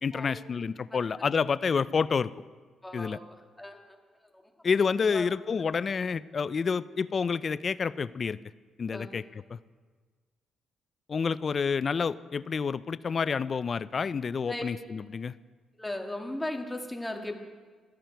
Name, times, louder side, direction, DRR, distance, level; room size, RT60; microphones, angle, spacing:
voice 1, 0.0-2.3 2.9-3.2 4.6-8.4 8.8-9.2 9.5-9.6 11.1-15.3, left 5 dB, 40° left, 17 dB, 0.4 m, -28 dB
voice 2, 2.8-3.3 3.6-4.0 4.3-4.4 5.1-5.3 8.9-9.2 14.5-14.6 15.8-17.4, left 1 dB, 10° left, 3 dB, 2.0 m, -36 dB
15.5 x 13.0 x 4.6 m, 1.5 s
cardioid pair, 90°, 0 cm